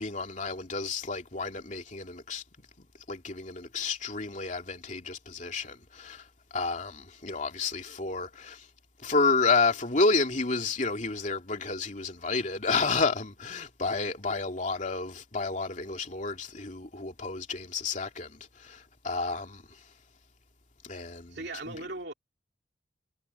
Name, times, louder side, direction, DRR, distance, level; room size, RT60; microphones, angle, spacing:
voice 1, 0.0-2.4 2.8-6.2 6.5-8.7 9.0-19.6 20.8-21.4 21.7-21.8, left 4 dB, 40° left, 2.8 m, -30 dB
voice 2, 21.3-22.1, right 2 dB, 60° right, 2.9 m, -38 dB
head